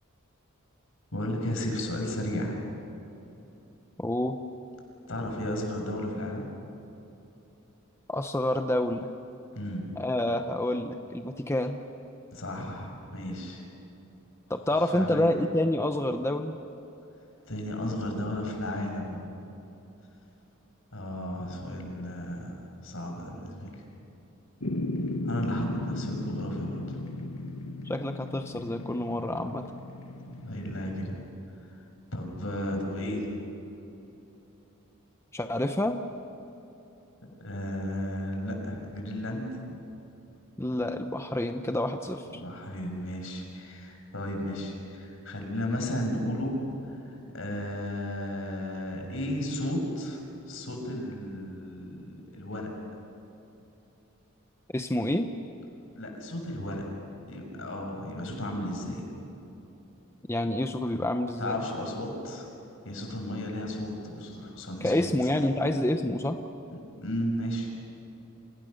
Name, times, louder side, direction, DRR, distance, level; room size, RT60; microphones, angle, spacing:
voice 1, 1.1-2.6 5.1-6.5 9.5-9.9 12.3-13.6 14.8-15.3 17.5-19.3 20.9-22.5 22.8-23.7 25.2-27.0 30.3-31.2 32.1-33.3 37.4-39.8 42.3-46.6 46.9-50.2 50.5-52.7 55.9-56.8 57.3-59.0 61.4-62.5 62.8-65.3 66.7-67.8, left 1 dB, 70° left, 2 dB, 6.6 m, -34 dB
voice 2, 4.0-4.4 8.1-9.1 10.0-11.8 14.5-16.6 27.8-29.6 35.3-36.0 40.6-42.4 54.7-55.3 60.3-61.6 64.8-66.4, left 1 dB, 15° left, 6 dB, 0.9 m, -28 dB
sound 1, 24.6-31.1, left 2 dB, 85° left, 2.1 m, -36 dB
30.0 x 27.5 x 6.7 m, 3.0 s
head